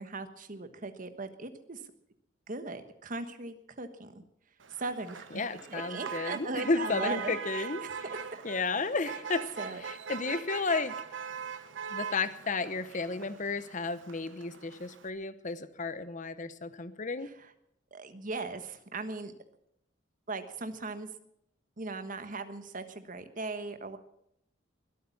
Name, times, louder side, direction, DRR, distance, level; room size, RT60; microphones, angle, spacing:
voice 1, 0.0-1.8 2.5-4.2 4.8-8.4 9.0-9.1 9.6-9.8 17.2-17.5 17.9-19.3 20.3-21.1 21.8-24.0, right 3 dB, 45° right, 9 dB, 1.3 m, -39 dB
Motor vehicle (road), 4.6-15.1, right 6 dB, 80° right, 1.0 m, -42 dB
voice 2, 5.3-7.8 8.4-9.5 9.8-11.0 11.9-17.3, left 3 dB, 40° left, 14 dB, 0.9 m, -33 dB
21.5 x 8.6 x 7.1 m, 0.75 s
head